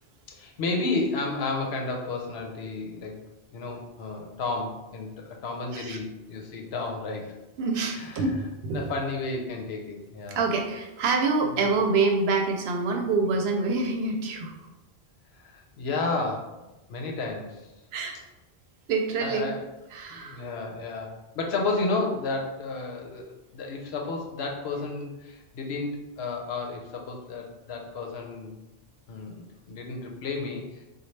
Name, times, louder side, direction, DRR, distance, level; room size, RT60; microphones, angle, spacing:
voice 1, 0.3-3.2 3.5-7.3 7.9-8.4 8.7-10.4 11.6-11.7 15.3-16.5 16.9-17.7 19.2-19.6 20.1-28.5 29.1-30.8, left 3 dB, 85° left, 1 dB, 0.9 m, -32 dB
voice 2, 7.6-8.8 10.3-14.5 17.9-18.2 18.9-19.4 19.9-20.4, right 4 dB, 80° right, 3 dB, 0.8 m, -26 dB
4.0 x 2.3 x 3.2 m, 0.99 s
omnidirectional pair, 1.0 m